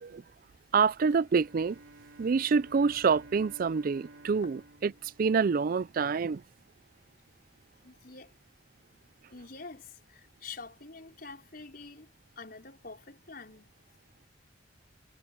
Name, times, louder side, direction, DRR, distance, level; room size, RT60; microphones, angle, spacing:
voice 1, 0.7-1.8 2.2-6.4, right 5 dB, 45° right, 0.4 m, -27 dB
Bowed string instrument, 1.2-6.0, right 2 dB, 85° right, 3.6 m, -53 dB
voice 2, 7.8-8.3 9.3-13.7, left 4 dB, 50° left, 5.1 m, -47 dB
head